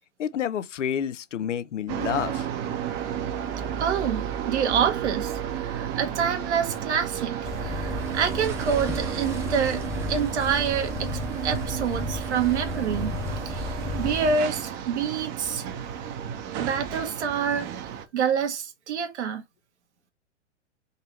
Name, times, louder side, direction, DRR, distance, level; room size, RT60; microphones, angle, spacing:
voice 1, 0.2-2.5, left 9 dB, 90° left, 0.6 m, -29 dB
sound 1, 1.9-18.1, right 9 dB, 35° right, 0.8 m, -32 dB
voice 2, 2.8-9.8 10.1-13.1 13.4-13.6 14.0-15.6 16.6-17.7 18.1-19.4, right 7 dB, 70° right, 1.3 m, -27 dB
sound 2, 7.4-14.3, left 3 dB, 10° left, 0.7 m, -33 dB
sound 3, 7.6-14.9, right 5 dB, 10° right, 0.3 m, -45 dB
3.9 x 2.8 x 4.3 m
hypercardioid pair, 120°, 35 cm